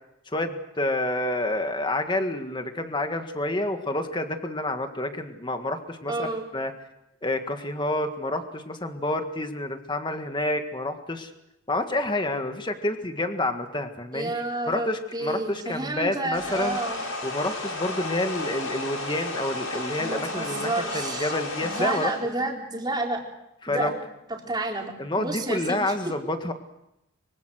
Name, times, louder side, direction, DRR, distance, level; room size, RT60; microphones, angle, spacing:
voice 1, 0.3-6.7 7.2-11.3 11.7-14.3 14.7-16.8 17.2-22.1 23.6-23.9 25.0-26.5, left 1 dB, 20° left, 6 dB, 1.8 m, -28 dB
voice 2, 6.1-6.4 14.1-17.0 20.0-21.3 21.6-23.2 23.7-24.0 24.3-25.8, right 2 dB, 20° right, 0 dB, 4.1 m, -30 dB
sound 1, 16.3-22.2, left 2 dB, 90° left, 7.9 m, -33 dB
24.5 x 24.5 x 6.5 m, 0.86 s
head